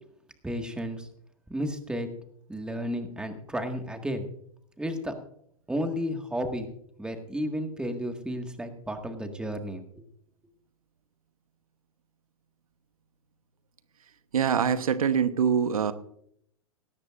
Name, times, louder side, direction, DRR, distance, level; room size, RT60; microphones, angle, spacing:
voice 1, 0.4-1.1 1.5-2.1 2.5-4.3 4.8-5.1 5.7-6.7 7.0-10.0, equal, 5° right, 5 dB, 1.7 m, -32 dB
voice 2, 14.3-15.9, right 7 dB, 85° right, 11 dB, 1.1 m, -24 dB
17.5 x 13.5 x 2.5 m, 0.69 s
hypercardioid pair, 120°, 18 cm